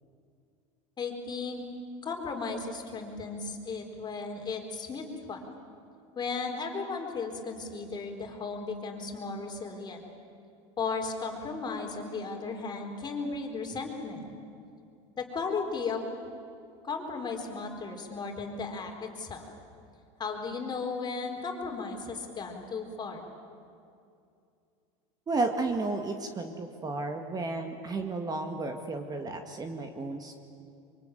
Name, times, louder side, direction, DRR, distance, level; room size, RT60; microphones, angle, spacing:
voice 1, 1.0-1.6 2.0-5.5 6.2-10.0 10.8-14.3 15.2-16.0 16.8-19.5 20.2-23.2, left 4 dB, 25° left, 3 dB, 4.2 m, -35 dB
voice 2, 25.3-30.3, right 3 dB, 25° right, 5 dB, 2.0 m, -33 dB
24.0 x 23.5 x 9.3 m, 2.5 s
supercardioid pair, 115°, 16 cm